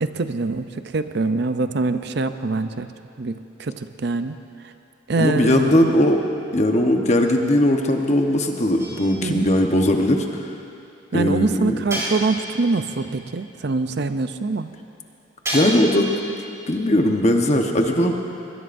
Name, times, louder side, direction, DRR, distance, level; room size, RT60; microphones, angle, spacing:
voice 1, 0.0-2.9 3.2-4.4 4.6-4.7 5.1-5.9 9.2-9.5 11.1-14.7, right 3 dB, 60° right, 10 dB, 0.5 m, -24 dB
voice 2, 5.2-6.2 6.5-10.3 11.1-11.7 15.5-16.1 16.7-18.1, left 1 dB, 35° left, 3 dB, 1.1 m, -19 dB
sound 1, 8.8-9.4 11.9-12.7 15.4-16.1, right 1 dB, 15° right, 4.7 m, -29 dB
22.0 x 20.5 x 2.6 m, 2.6 s
head